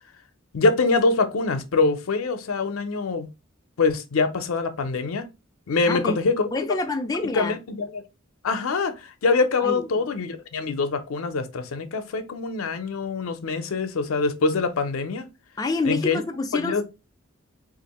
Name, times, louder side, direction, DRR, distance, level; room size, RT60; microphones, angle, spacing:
voice 1, 0.5-3.3 3.8-5.3 5.7-6.5 7.3-8.0 8.4-15.3 15.8-16.2 16.5-16.8, left 3 dB, 85° left, 0.5 m, -24 dB
voice 2, 5.9-6.2 6.5-7.6 9.6-10.0 15.6-16.8, left 3 dB, 20° left, 0.3 m, -27 dB
3.5 x 2.5 x 2.9 m
head